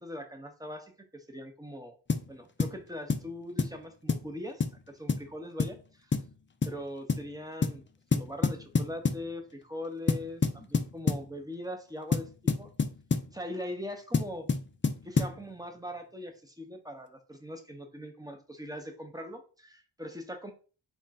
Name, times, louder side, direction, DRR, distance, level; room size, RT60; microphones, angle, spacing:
voice 1, 0.0-2.0 2.3-6.1 6.7-7.8 8.1-12.7 13.3-14.5 15.0-20.5, left 1 dB, 10° right, 4 dB, 0.7 m, -41 dB
sound 1, 2.1-2.3 2.6-2.8 3.1-3.3 3.6-3.8 4.1-4.3 4.6-4.8 5.1-5.3 5.6-5.8 6.1-6.3 6.6-6.8 7.1-7.3 7.6-7.8 8.1-9.3 10.1-11.3 12.1-13.3 14.1-15.4, left 4 dB, 25° left, 0.4 m, -28 dB
3.5 x 2.4 x 4.1 m, 0.37 s
wide cardioid pair, 65°, 46 cm